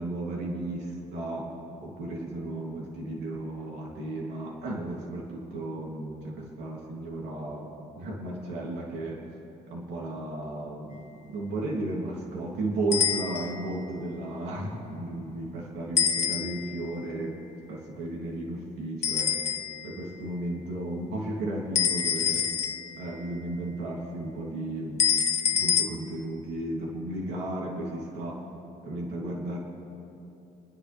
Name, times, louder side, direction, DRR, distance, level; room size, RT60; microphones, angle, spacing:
voice 1, 0.0-1.5 1.8-9.2 9.7-17.4 17.7-19.3 19.8-22.4 23.0-25.0 25.5-28.4 28.8-29.6, right 2 dB, 85° right, -3 dB, 3.1 m, -34 dB
sound 1, 12.9-13.7 16.0-16.8 19.0-19.9 21.8-23.2 25.0-25.9, left 8 dB, 40° left, 0.7 m, -26 dB
29.5 x 10.5 x 3.6 m, 2.9 s
cardioid pair, 110°, 17 cm